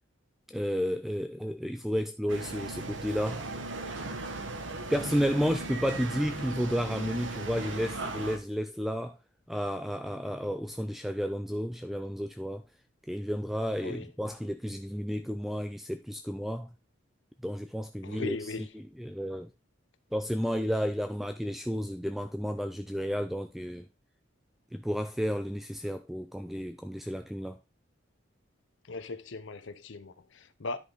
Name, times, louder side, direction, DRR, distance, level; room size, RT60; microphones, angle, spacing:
voice 1, 0.5-3.6 4.9-9.2 9.5-12.6 13.1-16.7 17.4-19.5 20.1-23.8 24.7-27.6, equal, ahead, 0.3 m, -32 dB
sound 1, 2.3-8.4, right 2 dB, 70° right, 1.2 m, -37 dB
voice 2, 18.0-18.7 28.9-30.8, left 3 dB, 70° left, 0.7 m, -38 dB
10.5 x 5.2 x 3.9 m
head